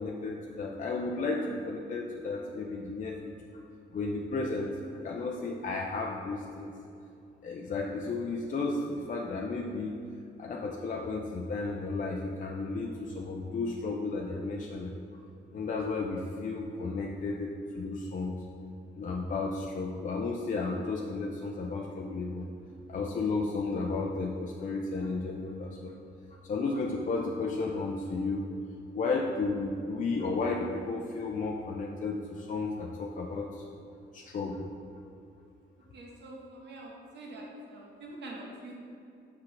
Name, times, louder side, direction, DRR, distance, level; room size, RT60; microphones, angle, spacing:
voice 1, 0.0-3.3 3.9-4.7 5.0-6.7 7.4-10.0 10.4-14.9 15.5-18.4 19.0-22.5 22.9-26.0 26.4-28.5 28.9-33.6 34.1-34.7, left 3 dB, 40° left, -1 dB, 0.5 m, -33 dB
voice 2, 35.9-38.8, right 1 dB, 60° right, -2 dB, 1.3 m, -45 dB
5.9 x 5.7 x 3.3 m, 2.5 s
cardioid pair, 90°, 20 cm